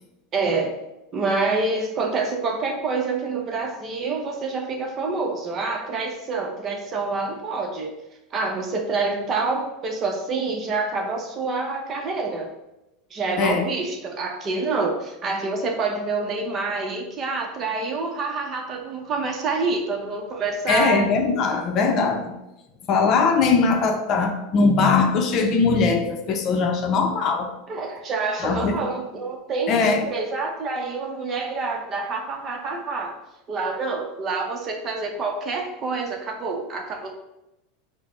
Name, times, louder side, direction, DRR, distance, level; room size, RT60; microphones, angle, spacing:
voice 1, 0.3-0.8 1.1-7.9 8.3-12.5 13.1-21.0 27.7-29.8 30.1-33.1 33.5-37.1, right 3 dB, 35° right, 2 dB, 0.7 m, -27 dB
voice 2, 20.7-22.3 22.9-27.5 28.4-28.8 29.7-30.1, left 4 dB, 45° left, 5 dB, 0.6 m, -20 dB
4.9 x 2.1 x 3.1 m, 0.93 s
hypercardioid pair, 105°, 0 cm